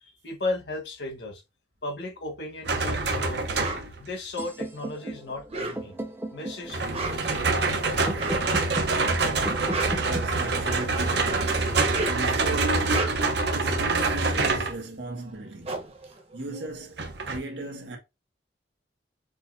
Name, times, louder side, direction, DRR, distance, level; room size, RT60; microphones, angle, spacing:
voice 1, 0.0-1.4 1.8-3.6 4.0-5.9 6.3-8.2, left 2 dB, 80° left, 1.4 m, -36 dB
sound 1, 2.6-4.0 6.7-14.8 17.0-17.4, right 3 dB, 70° right, 0.9 m, -26 dB
sound 2, 3.6-3.9 5.4-6.1 6.8-7.4 8.1-8.5 9.4-10.7 11.7-12.3 12.8-13.4 15.0-15.1 15.3-17.0, right 2 dB, 35° right, 1.0 m, -34 dB
sound 3, 4.4-12.3, right 1 dB, 15° right, 0.6 m, -38 dB
voice 2, 9.3-18.0, right 2 dB, 85° right, 1.8 m, -37 dB
6.7 x 2.8 x 2.7 m
head